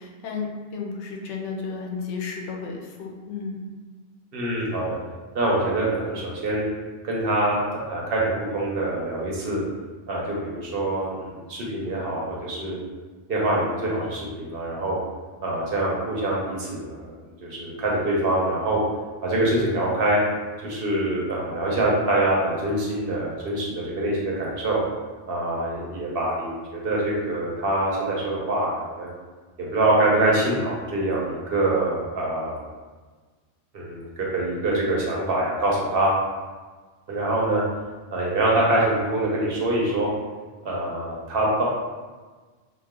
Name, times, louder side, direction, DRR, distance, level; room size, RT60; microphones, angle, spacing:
voice 1, 0.0-3.6, left 5 dB, 80° left, 0 dB, 0.9 m, -33 dB
voice 2, 4.3-5.0 5.3-6.6 7.0-9.6 10.1-12.8 13.3-15.0 15.4-18.8 19.2-20.2 20.6-24.8 25.3-29.1 29.6-32.6 33.7-36.1 37.1-37.6 38.1-40.1 40.6-41.6, right 1 dB, 60° right, -4 dB, 0.9 m, -25 dB
3.1 x 2.1 x 3.5 m, 1.4 s
omnidirectional pair, 1.2 m